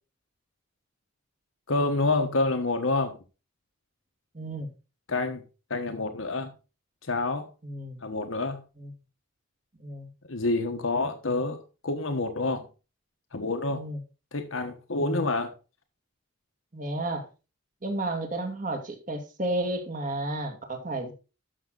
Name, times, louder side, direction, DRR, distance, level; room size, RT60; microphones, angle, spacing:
voice 1, 1.7-3.2 5.1-5.4 5.7-6.5 7.0-7.5 8.0-8.6 10.3-12.7 13.3-13.8 14.3-15.5, left 2 dB, 85° left, 1.3 m, -28 dB
voice 2, 4.3-4.7 7.6-8.0 8.8-8.9 9.8-10.1 13.7-14.0 15.0-15.2 16.7-17.2 17.8-21.1, right 1 dB, 40° right, 2.3 m, -32 dB
12.5 x 6.4 x 4.0 m
head